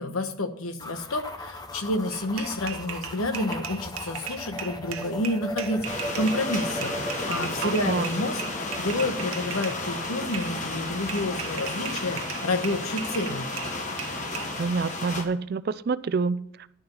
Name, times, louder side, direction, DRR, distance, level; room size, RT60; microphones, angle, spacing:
voice 1, 0.0-13.5, left 1 dB, 90° left, 1.1 m, -29 dB
sound 1, 0.8-9.4, left 1 dB, 20° left, 0.7 m, -37 dB
sound 2, 2.1-9.8 10.3-10.5 11.1-14.5, right 9 dB, 90° right, 0.9 m, -38 dB
sound 3, 5.8-15.2, left 2 dB, 35° left, 1.3 m, -33 dB
voice 2, 7.6-8.1 14.6-16.7, right 4 dB, 45° right, 0.4 m, -27 dB
10.5 x 6.9 x 5.4 m
head